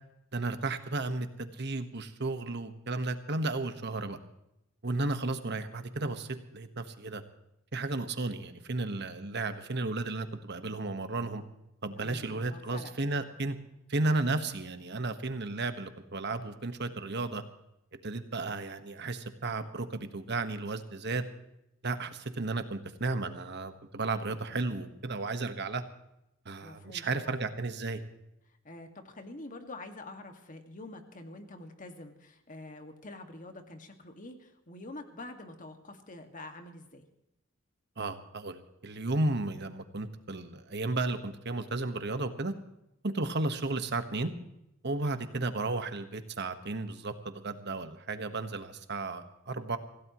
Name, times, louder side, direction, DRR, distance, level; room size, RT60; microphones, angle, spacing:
voice 1, 0.3-4.2 4.8-7.2 7.7-11.4 11.8-13.5 13.9-17.4 18.0-21.3 21.8-25.8 26.4-28.0 38.0-42.5 43.0-44.3 44.8-49.8, right 2 dB, 55° right, 8 dB, 1.4 m, -33 dB
voice 2, 12.0-12.9 26.6-27.4 28.6-37.0, left 2 dB, 40° left, 6 dB, 2.0 m, -46 dB
25.5 x 16.5 x 3.1 m, 0.84 s
head